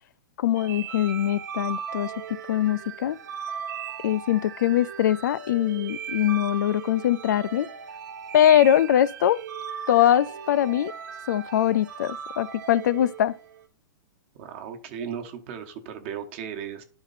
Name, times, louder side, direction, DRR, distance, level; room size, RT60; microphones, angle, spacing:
voice 1, 0.4-2.1 2.5-3.2 4.0-7.7 8.3-9.4 9.9-10.9 11.3-13.4, left 11 dB, 55° left, 0.4 m, -22 dB
sound 1, 0.5-13.7, right 7 dB, 55° right, 1.2 m, -38 dB
voice 2, 14.4-16.8, right 8 dB, 35° right, 1.1 m, -36 dB
11.0 x 4.4 x 4.1 m
hypercardioid pair, 175°, 12 cm